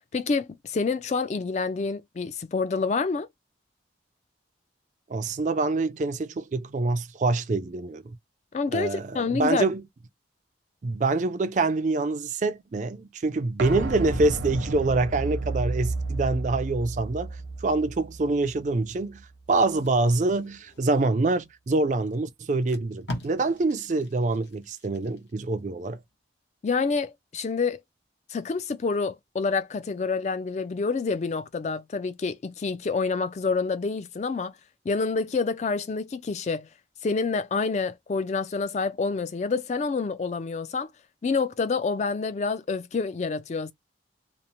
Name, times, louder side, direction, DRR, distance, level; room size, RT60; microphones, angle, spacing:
voice 1, 0.1-3.3 8.5-9.7 26.6-27.8 28.3-34.5 34.9-36.7 37.0-40.9 41.2-43.7, left 4 dB, 35° left, 0.3 m, -27 dB
voice 2, 5.1-8.2 8.7-9.8 10.8-26.0, right 3 dB, 40° right, 0.3 m, -26 dB
sound 1, 13.6-19.2 19.5-19.6, right 2 dB, 75° right, 0.8 m, -32 dB
Packing tape duct tape, 19.7-21.4 22.1-22.2 22.5-25.5 25.9-26.1, left 1 dB, 70° left, 0.9 m, -42 dB
2.9 x 2.0 x 2.5 m
head